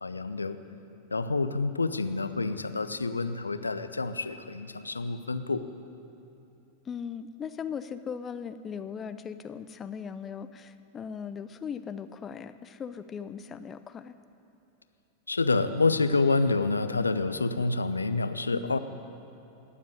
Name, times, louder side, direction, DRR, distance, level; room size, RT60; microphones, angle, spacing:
voice 1, 0.0-0.6 1.1-5.6 15.3-18.8, left 3 dB, 80° left, 11 dB, 0.6 m, -28 dB
voice 2, 6.9-14.1 18.5-18.8, left 7 dB, 25° left, 11 dB, 0.5 m, -38 dB
18.0 x 7.5 x 9.4 m, 2.7 s
figure-of-eight pair, 90°, 0 cm